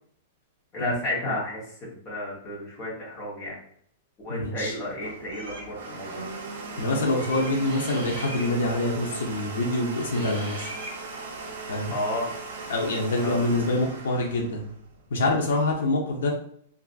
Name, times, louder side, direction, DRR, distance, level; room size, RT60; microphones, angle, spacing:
voice 1, 0.7-3.6 4.2-6.3 11.9-12.4 13.2-13.5, left 1 dB, 20° left, -5 dB, 0.9 m, -32 dB
voice 2, 4.3-4.8 6.8-10.7 11.7-11.9 12.7-14.7 15.1-16.3, left 2 dB, 80° left, 0 dB, 0.5 m, -25 dB
Domestic sounds home sounds, 4.8-15.3, right 3 dB, 70° right, 0.4 m, -38 dB
sound 1, 5.3-5.7 7.2-8.5 10.1-11.0, right 1 dB, 40° right, 0.7 m, -40 dB
2.6 x 2.4 x 2.3 m, 0.62 s
supercardioid pair, 180°, 0 cm